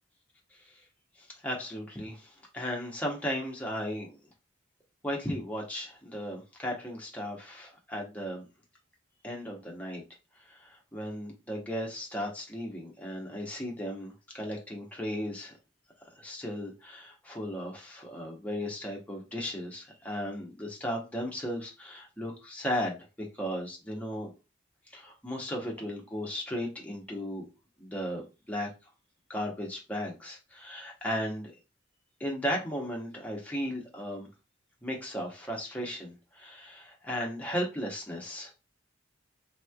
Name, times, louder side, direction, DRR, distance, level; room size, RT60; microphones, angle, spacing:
voice 1, 1.2-4.2 5.0-8.5 9.2-10.0 10.5-15.5 16.1-23.1 23.4-24.3 24.9-27.5 27.8-28.7 29.3-31.5 32.2-34.3 34.8-38.5, equal, 10° left, -1 dB, 0.8 m, -36 dB
3.4 x 3.0 x 2.3 m, 0.29 s
head